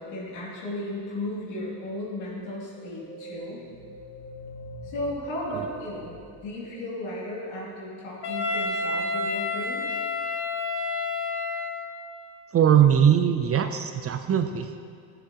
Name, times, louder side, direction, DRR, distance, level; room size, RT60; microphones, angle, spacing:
voice 1, 0.0-3.6 4.8-6.1 6.4-10.0, left 1 dB, 80° left, -4 dB, 2.6 m, -35 dB
sound 1, 2.7-7.3, equal, 40° left, 2.5 m, -44 dB
Wind instrument woodwind instrument, 8.2-12.1, left 3 dB, 60° left, 1.2 m, -29 dB
voice 2, 12.5-14.7, right 9 dB, 35° right, 7 dB, 0.4 m, -20 dB
11.0 x 9.3 x 2.9 m, 2.3 s
cardioid pair, 110°, 46 cm